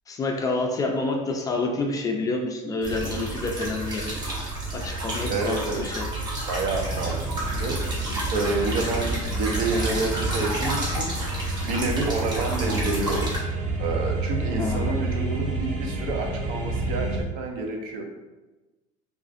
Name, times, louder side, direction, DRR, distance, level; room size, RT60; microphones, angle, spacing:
voice 1, 0.1-4.2 4.7-6.1 14.6-14.9, left 3 dB, 20° left, 1 dB, 0.3 m, -28 dB
sound 1, 2.8-13.4, right 1 dB, 25° right, 0.9 m, -30 dB
voice 2, 5.3-5.9 6.5-7.8 8.3-11.4 11.7-13.3 13.8-18.0, right 3 dB, 65° right, 2 dB, 0.7 m, -29 dB
sound 2, 6.6-17.2, right 2 dB, 90° right, 1.3 m, -30 dB
3.6 x 2.4 x 2.5 m, 1.1 s
cardioid pair, 135°, 16 cm